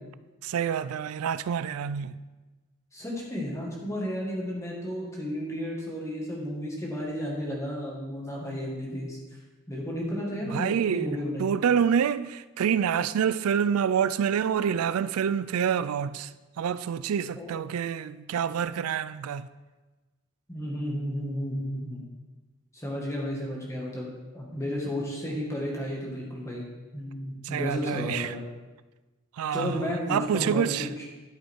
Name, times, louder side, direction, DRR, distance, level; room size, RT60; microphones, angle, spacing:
voice 1, 0.4-2.1 10.3-16.3 16.6-19.5 27.5-28.3 29.4-30.9, right 8 dB, 90° right, 0.4 m, -27 dB
voice 2, 2.9-9.2 9.7-11.6 17.4-17.6 20.5-22.1 22.7-24.1 24.3-26.7 26.9-28.5 29.5-31.0, equal, 15° left, 1.8 m, -33 dB
11.5 x 5.6 x 4.5 m
head